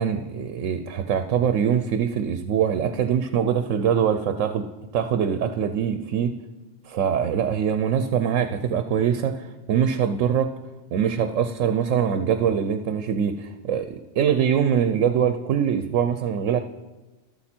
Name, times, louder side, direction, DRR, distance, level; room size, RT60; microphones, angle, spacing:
voice 1, 0.0-4.6 4.9-6.3 6.8-10.5 10.9-16.6, right 8 dB, 85° right, 9 dB, 1.0 m, -23 dB
12.0 x 11.5 x 4.4 m, 1.1 s
omnidirectional pair, 1.3 m